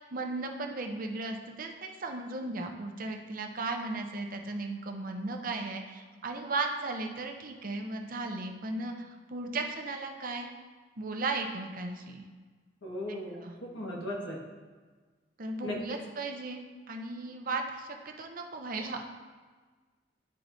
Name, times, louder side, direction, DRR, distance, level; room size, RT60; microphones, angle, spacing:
voice 1, 0.1-10.5 11.0-12.2 13.3-13.6 15.4-19.0, right 3 dB, 50° right, 4 dB, 0.7 m, -36 dB
voice 2, 12.8-14.4 15.6-15.8, left 1 dB, 90° left, -2 dB, 1.6 m, -37 dB
10.5 x 4.6 x 2.7 m, 1.4 s
head